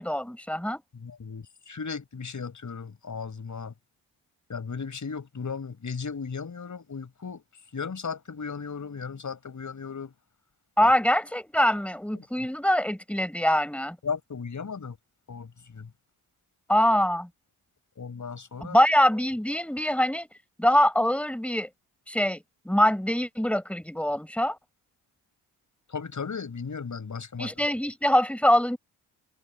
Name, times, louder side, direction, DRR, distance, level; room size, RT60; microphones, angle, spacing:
voice 1, 0.0-0.8 10.8-14.0 16.7-17.3 18.6-20.3 20.6-21.7 22.1-24.6 27.4-28.8, equal, 5° left, 5.2 m, -24 dB
voice 2, 0.9-3.7 4.5-7.4 7.7-10.1 10.8-10.9 12.2-12.3 14.0-15.0 15.3-15.9 18.0-18.8 25.9-27.7, left 5 dB, 45° left, 6.6 m, -36 dB
supercardioid pair, 60°, 42 cm